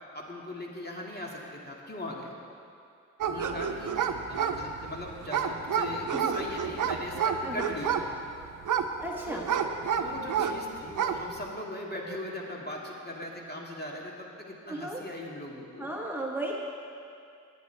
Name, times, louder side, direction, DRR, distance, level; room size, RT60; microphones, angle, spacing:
voice 1, 0.1-2.3 3.3-3.9 4.3-8.2 9.3-9.5 9.9-15.9, left 1 dB, 30° left, -2 dB, 2.1 m, -39 dB
sound 1, 3.2-10.6 10.9-11.3, right 7 dB, 75° right, 0.7 m, -29 dB
voice 2, 6.1-6.4 7.4-7.7 9.0-9.5 14.7-15.0 15.8-16.5, right 1 dB, 5° right, -2 dB, 1.3 m, -35 dB
17.5 x 9.1 x 3.4 m, 2.5 s
cardioid pair, 55°, 31 cm